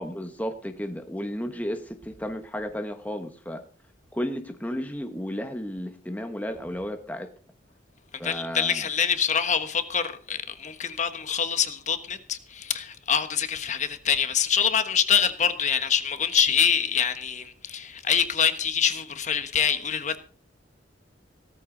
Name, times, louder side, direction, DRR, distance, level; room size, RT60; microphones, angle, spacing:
voice 1, 0.0-3.6 4.1-7.3 8.2-8.9, equal, 10° left, 1.2 m, -33 dB
voice 2, 8.2-20.2, left 7 dB, 40° left, 1.3 m, -25 dB
17.0 x 14.0 x 3.9 m
head